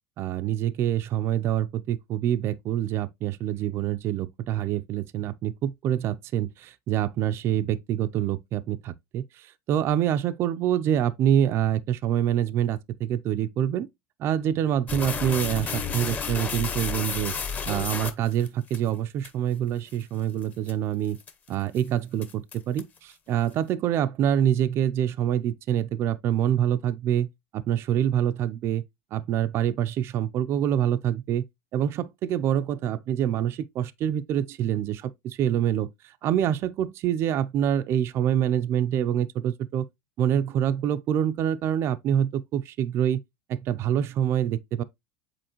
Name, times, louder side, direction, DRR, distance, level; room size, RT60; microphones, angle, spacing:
voice 1, 0.2-13.9 14.2-17.3 17.7-21.2 21.5-28.8 29.1-31.4 31.7-39.8 40.2-43.2 43.5-44.8, right 10 dB, 35° right, 0.4 m, -26 dB
sound 1, 14.9-18.8 19.2-19.3 19.9-20.0 20.4-20.7 21.2-21.5 21.8-21.9 22.2-23.0, left 5 dB, 20° left, 0.8 m, -31 dB
7.7 x 4.3 x 2.9 m
supercardioid pair, 155°, 7 cm